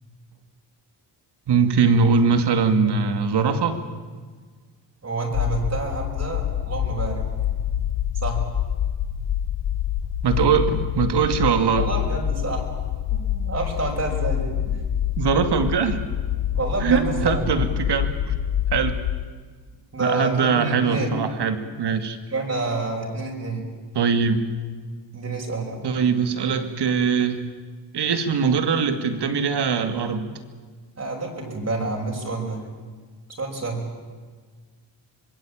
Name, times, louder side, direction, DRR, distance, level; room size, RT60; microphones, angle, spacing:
voice 1, 1.5-3.8 10.2-11.8 15.2-16.0 16.8-18.4 18.7-19.0 20.0-22.2 23.9-24.4 25.8-27.4 27.9-30.3, right 5 dB, 65° right, 9 dB, 2.5 m, -21 dB
voice 2, 5.0-7.3 8.2-8.4 10.7-10.8 11.4-12.7 13.1-14.8 16.5-17.5 19.9-21.2 22.3-23.7 25.1-25.8 31.0-32.6 33.4-33.8, right 3 dB, 35° right, 0 dB, 5.9 m, -28 dB
sound 1, 5.3-19.2, left 10 dB, 65° left, 0.9 m, -26 dB
25.0 x 21.5 x 8.9 m, 1.5 s
cardioid pair, 110°, 44 cm